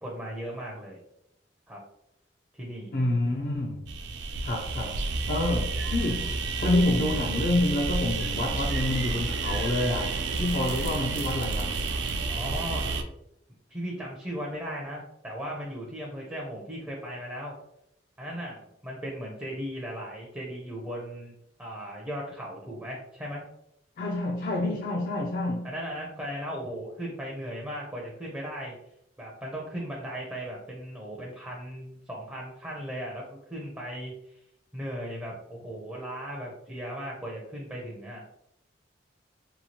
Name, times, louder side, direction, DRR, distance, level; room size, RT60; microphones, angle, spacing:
voice 1, 0.0-1.0 1.7-1.8 2.5-2.9 12.3-12.9 13.7-17.5 18.2-21.3 21.6-23.4 25.6-28.7 29.2-33.2 33.5-34.1 34.7-38.2, equal, 10° right, 0.5 m, -37 dB
voice 2, 2.9-3.8 4.4-11.7 24.0-25.7, left 2 dB, 45° left, 0.4 m, -28 dB
sound 1, 3.9-13.0, right 3 dB, 65° right, 0.3 m, -30 dB
2.9 x 2.3 x 2.7 m
head